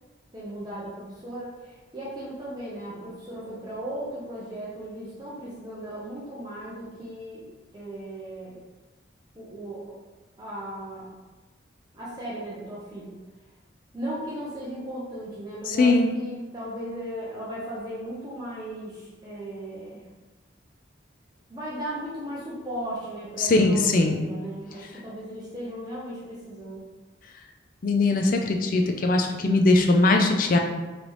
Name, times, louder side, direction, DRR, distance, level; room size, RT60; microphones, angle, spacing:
voice 1, 0.3-7.5 7.7-8.6 9.3-10.0 10.4-11.1 11.9-13.1 13.9-20.0 21.5-26.9, right 1 dB, 20° right, -7 dB, 0.7 m, -36 dB
voice 2, 15.7-16.1 23.4-24.2 27.8-30.6, left 2 dB, 45° left, 3 dB, 0.4 m, -20 dB
3.9 x 3.2 x 3.1 m, 1.2 s
head